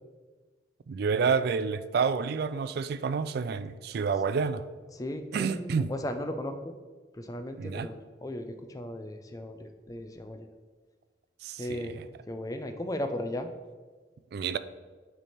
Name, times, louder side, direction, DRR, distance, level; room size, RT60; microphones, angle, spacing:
voice 1, 0.9-4.6 5.3-5.9 7.6-7.9 11.4-11.9 14.3-14.6, right 5 dB, 60° right, 0.3 m, -29 dB
voice 2, 4.9-6.7 7.1-10.5 11.6-13.5, left 1 dB, 20° left, 0.5 m, -36 dB
9.3 x 3.4 x 4.2 m
head